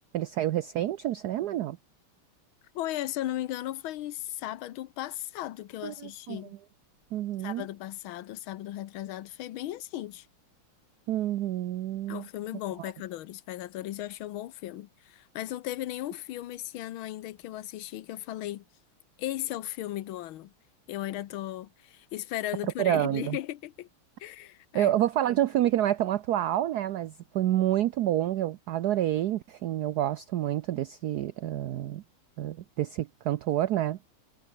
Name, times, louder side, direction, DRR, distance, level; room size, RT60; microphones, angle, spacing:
voice 1, 0.1-1.8 5.8-6.4 7.1-7.6 11.1-12.3 22.8-23.4 24.7-32.0 32.4-34.1, right 12 dB, 70° right, 0.9 m, -28 dB
voice 2, 2.7-6.5 7.4-10.3 12.1-18.6 19.2-20.5 20.9-23.9 24.2-24.9, left 14 dB, 75° left, 1.7 m, -36 dB
omnidirectional pair, 2.3 m